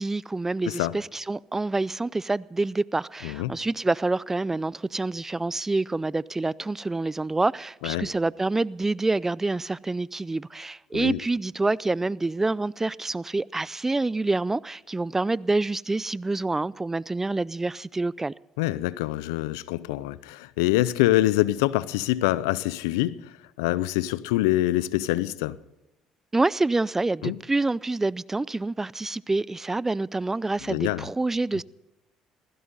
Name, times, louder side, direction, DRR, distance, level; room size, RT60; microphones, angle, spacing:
voice 1, 0.0-18.3 26.3-31.6, right 2 dB, 20° right, 0.4 m, -27 dB
voice 2, 18.6-23.2 23.6-25.6 27.2-27.4 30.7-31.1, left 16 dB, 90° left, 0.5 m, -25 dB
17.5 x 15.5 x 4.1 m
supercardioid pair, 65°, 2 cm